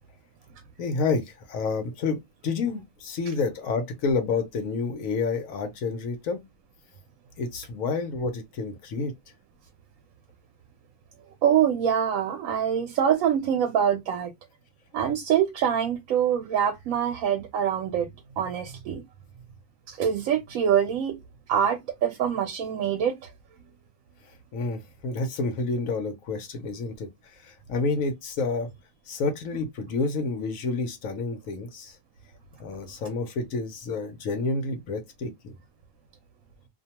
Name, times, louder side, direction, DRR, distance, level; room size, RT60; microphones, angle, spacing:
voice 1, 0.8-6.4 7.4-9.1 24.5-27.1 27.4-28.7 29.1-32.0 32.6-35.5, left 4 dB, 80° left, 1.1 m, -29 dB
voice 2, 11.4-14.3 14.9-18.1 18.4-19.0 19.9-21.2 21.5-23.1, right 9 dB, 90° right, 1.0 m, -24 dB
2.7 x 2.2 x 2.8 m
omnidirectional pair, 1.4 m